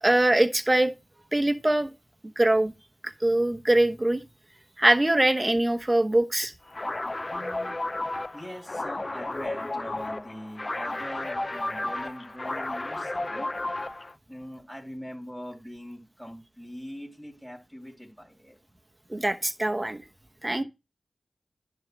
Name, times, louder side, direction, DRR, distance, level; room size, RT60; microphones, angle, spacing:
voice 1, 0.0-0.9 1.3-1.9 2.4-2.7 3.0-4.2 4.8-6.5 19.1-20.0 20.4-20.6, right 1 dB, 20° right, 0.9 m, -23 dB
sound 1, 6.7-14.1, left 2 dB, 35° left, 0.5 m, -33 dB
voice 2, 7.3-7.8 8.3-13.5 14.3-18.6 20.6-20.7, equal, ahead, 3.0 m, -42 dB
10.5 x 3.5 x 6.2 m
wide cardioid pair, 70°, 0 cm